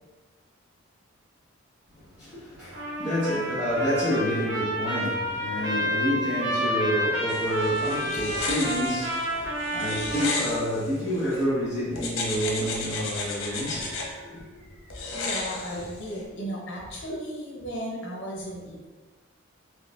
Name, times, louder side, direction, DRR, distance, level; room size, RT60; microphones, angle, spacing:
voice 1, 2.0-14.5 14.9-15.0, equal, 5° right, -15 dB, 1.4 m, -29 dB
Trumpet, 2.7-10.8, equal, 65° right, 0.7 m, -30 dB
sound 1, 7.3-11.4 12.0-14.1 14.9-16.2, left 3 dB, 80° left, 0.7 m, -33 dB
voice 2, 15.1-18.9, equal, 55° left, -3 dB, 0.9 m, -36 dB
4.0 x 3.3 x 2.5 m, 1.3 s
head